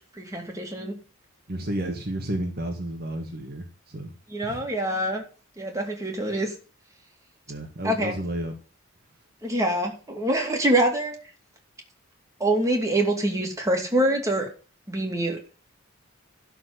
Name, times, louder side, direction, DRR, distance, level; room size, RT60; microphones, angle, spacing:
voice 1, 0.2-0.9 4.3-5.2 5.6-6.5 7.8-8.2 9.4-11.1 12.4-14.5 14.9-15.4, right 1 dB, 15° right, 2 dB, 2.6 m, -25 dB
voice 2, 1.5-4.1 4.4-4.6 7.5-8.5, right 1 dB, 45° right, 3 dB, 1.5 m, -31 dB
12.0 x 4.5 x 8.1 m, 0.36 s
head